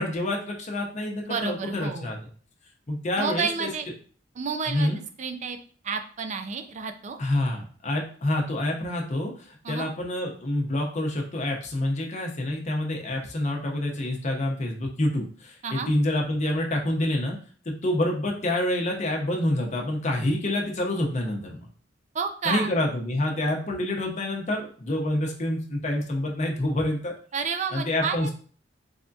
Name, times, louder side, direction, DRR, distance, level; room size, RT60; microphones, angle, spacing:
voice 1, 0.0-2.2 2.9-3.7 4.7-5.0 7.2-17.4 17.7-21.7 22.4-27.1 27.7-28.3, left 1 dB, 40° left, 1 dB, 0.7 m, -27 dB
voice 2, 1.2-2.2 3.2-3.9 4.4-4.9 5.2-5.6 5.8-7.2 9.6-9.9 15.6-15.9 22.1-22.7 27.3-28.3, right 5 dB, 40° right, 7 dB, 0.4 m, -30 dB
3.5 x 3.4 x 2.6 m, 0.43 s
head